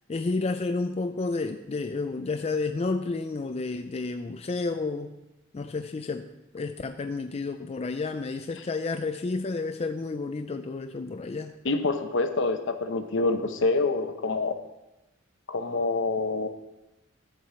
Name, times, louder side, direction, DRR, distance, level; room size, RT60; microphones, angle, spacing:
voice 1, 0.1-5.1 5.5-6.3 6.5-11.5, left 3 dB, 30° left, 8 dB, 0.4 m, -31 dB
voice 2, 11.6-14.6 15.5-16.5, left 3 dB, 60° left, 8 dB, 0.8 m, -26 dB
12.5 x 4.7 x 6.9 m, 0.98 s
head